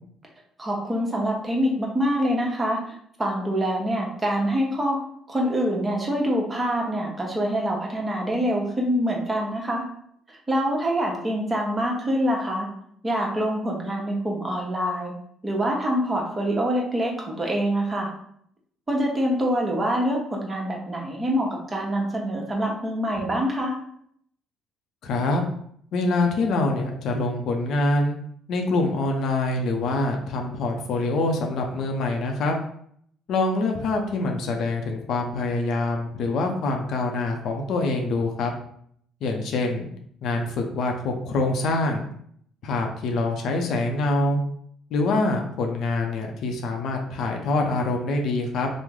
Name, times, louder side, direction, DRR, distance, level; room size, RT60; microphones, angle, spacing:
voice 1, 0.6-5.0 5.3-9.8 10.5-12.7 13.0-15.1 15.4-18.1 18.9-23.7, equal, 25° right, -1 dB, 1.0 m, -25 dB
voice 2, 25.0-25.4 25.9-28.2 28.5-32.6 33.3-38.5 39.2-39.9 40.2-42.0 42.6-44.4 44.9-48.7, left 2 dB, 65° left, 2 dB, 0.6 m, -25 dB
3.1 x 2.0 x 3.6 m, 0.67 s
supercardioid pair, 75°, 0 cm